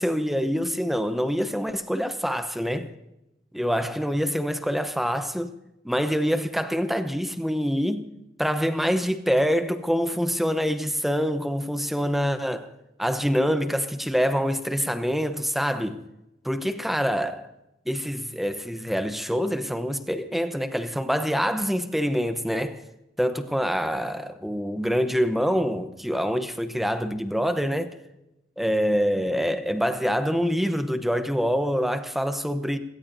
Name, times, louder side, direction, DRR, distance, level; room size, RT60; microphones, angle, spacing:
voice 1, 0.0-2.9 3.5-5.5 5.8-8.1 8.4-12.7 13.0-16.0 16.4-17.5 17.9-22.8 23.2-28.0 28.6-32.8, equal, ahead, 0.9 m, -25 dB
27.5 x 17.5 x 2.7 m
head